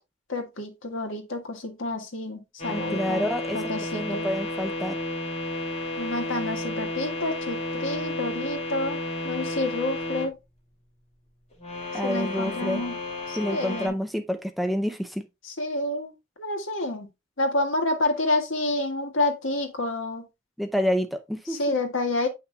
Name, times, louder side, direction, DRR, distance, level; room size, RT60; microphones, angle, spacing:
voice 1, 0.3-3.3 3.5-4.3 6.0-9.0 9.2-10.3 12.0-12.9 13.3-14.0 15.4-16.1 16.4-17.1 17.4-20.2 21.5-22.3, left 2 dB, 70° left, 1.8 m, -29 dB
sound 1, 2.6-10.3 11.5-13.9, left 2 dB, 35° left, 2.4 m, -32 dB
voice 2, 2.7-5.0 11.9-12.8 13.4-15.2 20.6-21.7, equal, ahead, 0.5 m, -28 dB
8.2 x 5.8 x 2.3 m
head